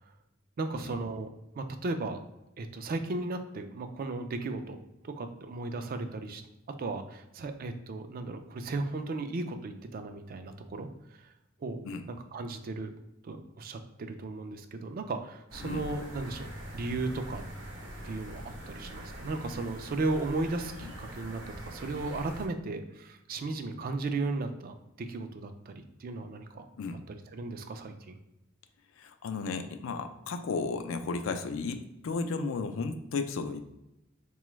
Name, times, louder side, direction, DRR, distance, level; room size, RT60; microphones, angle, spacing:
voice 1, 0.6-1.3 1.6-2.2 2.6-4.8 5.0-6.4 6.8-11.3 11.6-11.8 12.1-12.9 13.2-17.4 18.0-26.7 27.1-28.2, right 3 dB, 50° right, 8 dB, 0.4 m, -35 dB
sound 1, 15.5-22.5, equal, 75° right, 0.8 m, -43 dB
voice 2, 29.0-33.7, left 4 dB, 80° left, 8 dB, 0.4 m, -34 dB
4.0 x 2.3 x 3.0 m, 0.91 s
head